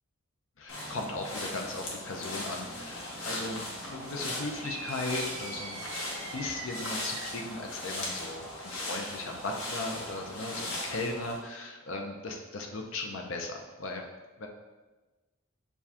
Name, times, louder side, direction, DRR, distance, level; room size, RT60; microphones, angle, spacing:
voice 1, 0.6-14.0 14.4-14.5, left 2 dB, 65° left, 2 dB, 0.6 m, -37 dB
sound 1, 0.7-11.4, left 1 dB, 85° left, 1.0 m, -38 dB
sound 2, 4.6-7.5, right 4 dB, 85° right, 0.5 m, -42 dB
6.8 x 2.3 x 2.8 m, 1.2 s
head